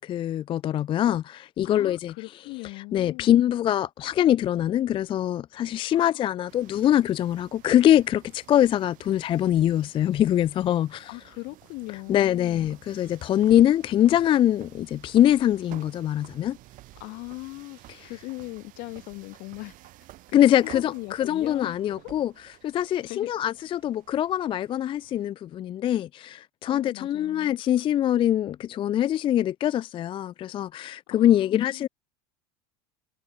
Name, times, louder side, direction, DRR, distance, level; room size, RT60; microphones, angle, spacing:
voice 1, 0.0-2.1 2.9-11.1 12.1-16.6 18.0-18.1 20.3-22.3 22.6-31.9, left 11 dB, 30° left, 0.4 m, -23 dB
voice 2, 1.6-3.4 5.9-6.3 11.1-12.7 17.0-17.8 18.0-19.8 20.3-22.1 23.1-23.3 26.6-27.6 31.1-31.9, left 25 dB, 55° left, 1.7 m, -39 dB
sound 1, 6.5-25.3, right 17 dB, 50° right, 6.3 m, -52 dB
supercardioid pair, 130°, 18 cm